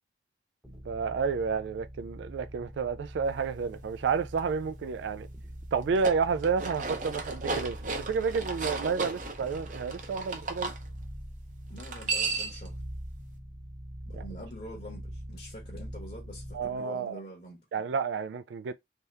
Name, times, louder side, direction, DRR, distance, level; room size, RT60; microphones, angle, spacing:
sound 1, 0.6-16.8, equal, 5° right, 0.8 m, -44 dB
voice 1, 0.9-5.3 5.7-10.7 14.1-14.2 16.5-17.2 17.7-18.7, right 5 dB, 80° right, 0.3 m, -30 dB
dog food in dish, 5.8-10.8 11.8-12.7, right 4 dB, 45° right, 0.7 m, -34 dB
voice 2, 11.7-12.8 14.1-17.6, equal, 40° left, 1.1 m, -45 dB
3.4 x 2.8 x 3.3 m
head